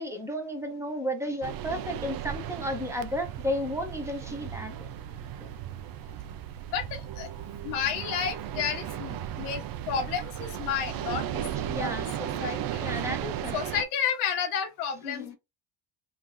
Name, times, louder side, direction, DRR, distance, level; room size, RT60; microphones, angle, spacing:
voice 1, 0.0-4.9 5.4-5.5 11.7-13.5 15.0-15.4, equal, 5° right, 1.1 m, -33 dB
sound 1, 1.4-13.8, right 10 dB, 55° right, 0.6 m, -35 dB
voice 2, 6.7-7.3 7.6-11.5 11.8-11.9 12.2-12.8 13.5-15.4, left 7 dB, 90° left, 1.0 m, -31 dB
3.7 x 2.8 x 3.2 m
supercardioid pair, 105°, 43 cm